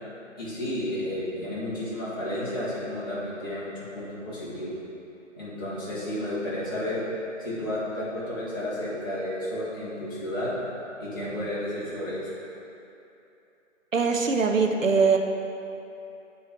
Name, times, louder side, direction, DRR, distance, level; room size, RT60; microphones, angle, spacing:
voice 1, 0.4-4.7 5.4-7.0 7.4-10.5 11.0-12.3, left 1 dB, 15° left, -10 dB, 1.2 m, -32 dB
voice 2, 13.9-15.2, right 4 dB, 80° right, 3 dB, 0.8 m, -22 dB
8.2 x 4.3 x 3.6 m, 2.8 s
figure-of-eight pair, 150°, 39 cm